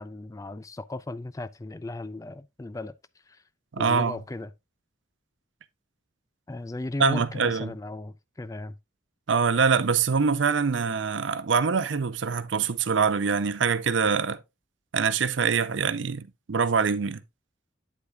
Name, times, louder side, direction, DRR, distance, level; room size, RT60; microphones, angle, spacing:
voice 1, 0.0-3.0 3.3-3.4 3.8-4.5 6.5-8.7, left 2 dB, 15° left, 0.3 m, -36 dB
voice 2, 3.7-4.2 7.0-7.7 9.3-14.4 14.9-17.2, right 5 dB, 80° right, 0.5 m, -24 dB
8.6 x 8.1 x 2.3 m
head